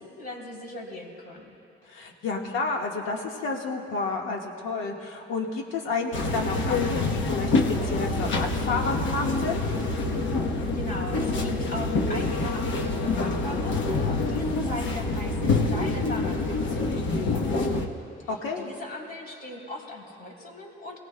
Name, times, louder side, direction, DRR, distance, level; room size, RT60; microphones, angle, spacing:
voice 1, 0.0-1.6 10.7-21.0, left 1 dB, 50° left, -2 dB, 3.4 m, -40 dB
voice 2, 1.9-9.6 18.3-18.7, left 4 dB, 90° left, 1 dB, 1.5 m, -30 dB
sound 1, 6.1-17.9, left 3 dB, 70° left, 1.1 m, -26 dB
23.0 x 17.5 x 2.2 m, 2.7 s
cardioid pair, 90°, 20 cm